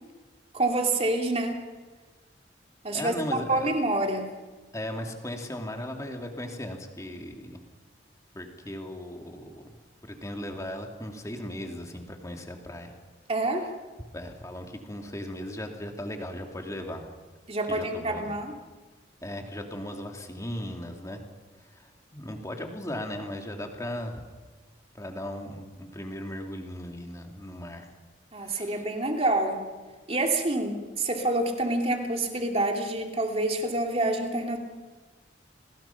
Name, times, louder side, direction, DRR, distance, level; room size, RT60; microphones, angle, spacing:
voice 1, 0.5-1.6 2.8-3.1 3.5-4.3 13.3-13.7 17.5-18.5 28.3-29.7 30.1-34.6, right 2 dB, 35° right, 3 dB, 2.8 m, -27 dB
voice 2, 2.9-3.7 4.7-7.6 8.3-13.0 14.1-17.1 17.7-18.4 19.2-21.2 21.6-24.2 24.9-27.9 28.4-28.8, left 1 dB, 20° left, 3 dB, 2.6 m, -37 dB
29.5 x 21.0 x 5.9 m, 1.3 s
head